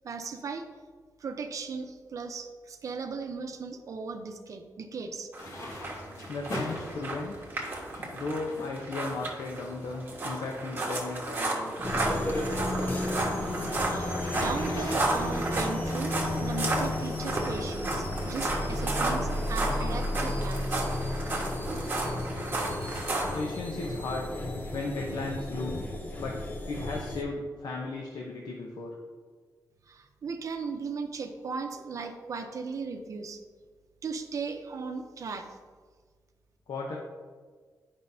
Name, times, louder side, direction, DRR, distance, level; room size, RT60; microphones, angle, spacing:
voice 1, 0.0-0.7 1.2-5.3 13.8-20.9 29.9-33.4 34.0-35.6, right 4 dB, 55° right, 6 dB, 0.7 m, -37 dB
sound 1, 5.3-23.4, right 2 dB, 30° right, 1.3 m, -33 dB
sound 2, 5.4-16.2, left 1 dB, 50° left, 1.6 m, -41 dB
voice 2, 6.3-7.5 8.1-11.9 23.3-24.3 24.7-25.9 26.2-28.9 36.7-37.0, left 3 dB, 80° left, -1 dB, 0.8 m, -36 dB
sound 3, 11.8-27.2, left 1 dB, 25° left, 0.7 m, -33 dB
10.5 x 5.2 x 2.7 m, 1.5 s
wide cardioid pair, 160°, 7 cm